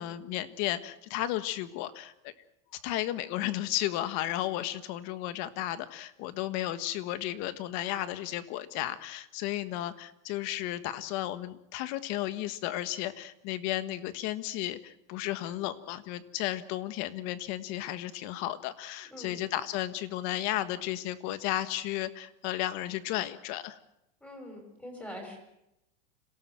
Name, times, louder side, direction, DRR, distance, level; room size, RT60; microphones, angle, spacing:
voice 1, 0.0-2.3 2.7-23.8, left 14 dB, 45° left, 12 dB, 1.5 m, -34 dB
voice 2, 24.2-25.4, left 1 dB, 5° left, 3 dB, 6.1 m, -43 dB
26.5 x 17.5 x 7.6 m, 0.85 s
supercardioid pair, 155°, 41 cm